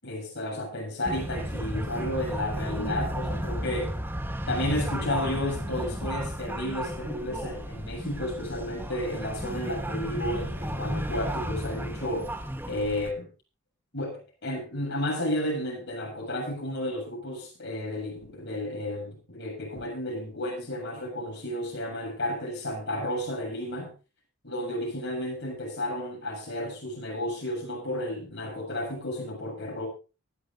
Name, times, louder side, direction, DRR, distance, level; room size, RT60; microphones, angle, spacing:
voice 1, 0.0-4.0 4.5-12.4 12.7-13.3 13.9-23.9 24.4-29.9, left 1 dB, 55° left, 7.5 m, -32 dB
sound 1, 1.0-13.1, equal, 10° right, 1.2 m, -33 dB
23.5 x 11.0 x 2.6 m
head